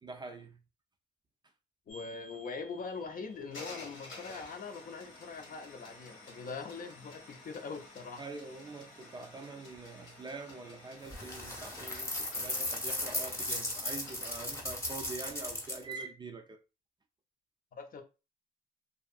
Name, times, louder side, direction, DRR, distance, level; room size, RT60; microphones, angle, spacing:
voice 1, 0.0-0.6 8.2-16.6, right 3 dB, 20° right, 0.4 m, -45 dB
sound 1, 1.9-14.3, left 2 dB, 80° left, 1.2 m, -52 dB
voice 2, 1.9-8.2 17.7-18.0, left 4 dB, 45° left, 0.6 m, -42 dB
sound 2, 11.1-15.9, left 1 dB, 15° left, 0.8 m, -36 dB
2.6 x 2.3 x 2.3 m
cardioid pair, 90°, 20 cm